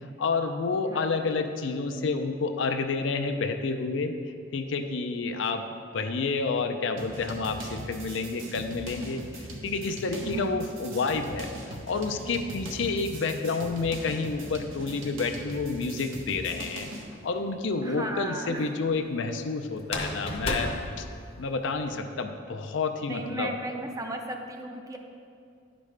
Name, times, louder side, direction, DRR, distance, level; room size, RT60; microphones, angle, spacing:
voice 1, 0.2-4.1 4.5-5.6 5.9-16.9 17.2-20.7 21.0-21.1 21.4-23.5, left 4 dB, 65° left, 6 dB, 0.5 m, -29 dB
sound 1, 7.0-17.1, right 1 dB, 85° right, 1.0 m, -40 dB
sound 2, 16.7-17.4 19.8-21.8, left 1 dB, 30° left, 0.8 m, -33 dB
voice 2, 17.8-18.7 23.1-25.0, right 2 dB, 20° right, 3 dB, 0.5 m, -35 dB
10.5 x 5.1 x 3.3 m, 2.3 s
head